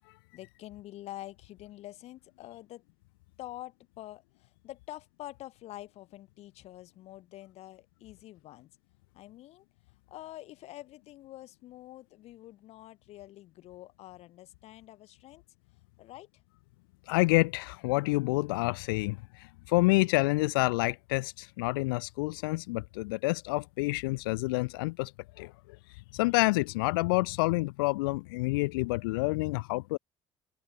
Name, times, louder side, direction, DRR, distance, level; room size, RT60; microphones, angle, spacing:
voice 1, 0.3-2.8 3.4-8.7 9.1-9.7 10.1-15.4 16.0-16.4, left 15 dB, 65° left, 4.0 m, -47 dB
voice 2, 17.1-25.1 25.4-25.5 26.1-30.0, left 24 dB, 85° left, 0.4 m, -28 dB
hypercardioid pair, 60°, 12 cm